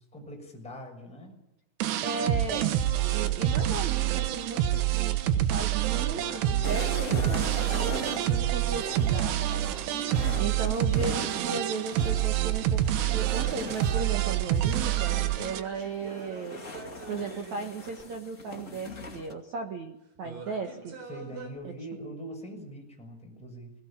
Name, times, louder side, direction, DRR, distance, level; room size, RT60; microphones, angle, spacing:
voice 1, 0.0-1.4 10.1-10.5 21.1-23.7, equal, ahead, 1 dB, 6.1 m, -42 dB
sound 1, 1.8-15.6, right 12 dB, 70° right, 2.9 m, -27 dB
voice 2, 2.0-2.7 3.1-7.4 7.7-10.1 10.4-16.6 17.1-20.9 21.6-21.7, right 4 dB, 85° right, 4 dB, 1.6 m, -36 dB
sound 2, 3.0-3.9 5.9-11.4 13.3-18.2 20.2-21.5, right 3 dB, 45° right, 5.6 m, -45 dB
sound 3, 6.6-15.3 15.7-19.3, left 2 dB, 45° left, 1.0 m, -41 dB
20.5 x 20.5 x 8.8 m, 0.93 s
omnidirectional pair, 6.0 m